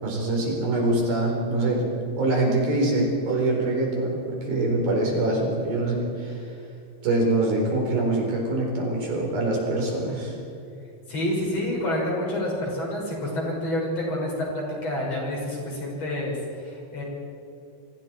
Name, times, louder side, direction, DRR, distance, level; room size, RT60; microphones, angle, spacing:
voice 1, 0.0-1.8 2.1-6.4 7.0-10.3, right 2 dB, 70° right, 0 dB, 6.1 m, -24 dB
voice 2, 11.1-17.0, left 1 dB, 40° left, -2 dB, 6.9 m, -28 dB
29.0 x 25.0 x 4.6 m, 2.5 s
omnidirectional pair, 4.4 m